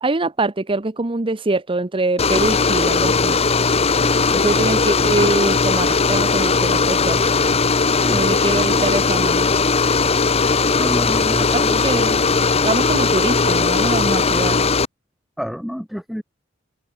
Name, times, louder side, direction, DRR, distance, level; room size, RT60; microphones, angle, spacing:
voice 1, 0.0-3.4 4.3-7.4 8.1-9.5 11.5-12.2 12.6-14.6, right 2 dB, 25° right, 0.9 m, -23 dB
sound 1, 2.2-14.9, left 4 dB, 30° left, 1.0 m, -18 dB
voice 2, 3.9-4.4 8.0-8.4 10.7-11.8 15.4-16.2, equal, ahead, 1.9 m, -29 dB
head